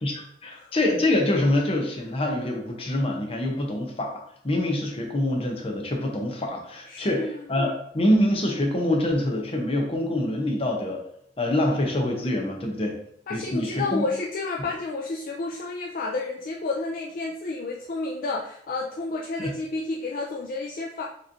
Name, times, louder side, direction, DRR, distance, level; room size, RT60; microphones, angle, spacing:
voice 1, 0.0-11.0 11.4-13.0 13.3-14.1 19.4-19.5, left 1 dB, 30° left, 1 dB, 0.8 m, -25 dB
voice 2, 6.9-7.4 13.3-21.0, left 3 dB, 50° left, -1 dB, 0.4 m, -31 dB
5.0 x 3.0 x 2.7 m, 0.69 s
head